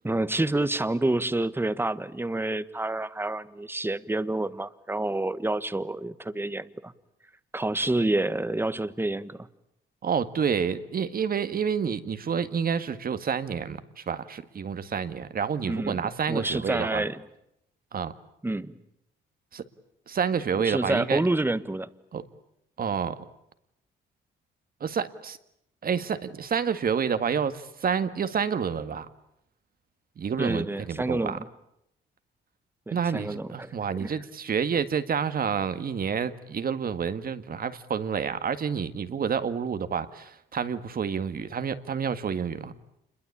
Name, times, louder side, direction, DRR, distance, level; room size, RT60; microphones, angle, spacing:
voice 1, 0.0-6.9 7.5-9.5 15.6-17.2 18.4-18.8 20.5-21.9 30.4-31.4 32.9-33.7 34.0-34.1, right 2 dB, 10° right, 14 dB, 1.3 m, -28 dB
voice 2, 10.0-17.0 17.9-18.1 19.5-19.6 20.1-21.2 22.1-22.2 22.8-23.2 24.8-25.4 25.8-29.1 30.2-31.4 32.9-42.8, right 7 dB, 50° right, 11 dB, 1.8 m, -29 dB
28.0 x 22.0 x 8.6 m, 0.78 s
cardioid pair, 90°, 20 cm